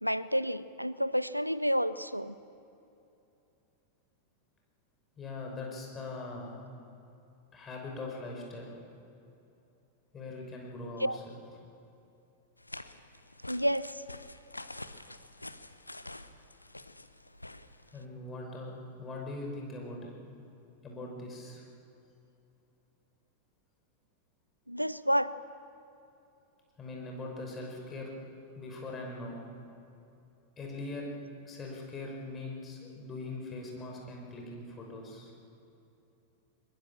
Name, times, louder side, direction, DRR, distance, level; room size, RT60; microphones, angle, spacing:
voice 1, 0.0-2.3 11.0-11.2 13.5-14.0 24.7-25.4, equal, 90° right, 17 dB, 0.5 m, -30 dB
voice 2, 5.2-6.6 7.5-8.7 10.1-11.4 17.9-20.1 20.8-21.6 26.8-28.1 28.5-29.4 30.6-31.1 31.5-35.3, left 2 dB, 20° left, 0 dB, 5.6 m, -41 dB
sound 1, 12.6-18.0, left 2 dB, 85° left, 0.7 m, -47 dB
22.5 x 21.5 x 7.2 m, 2.8 s
figure-of-eight pair, 90°, 0 cm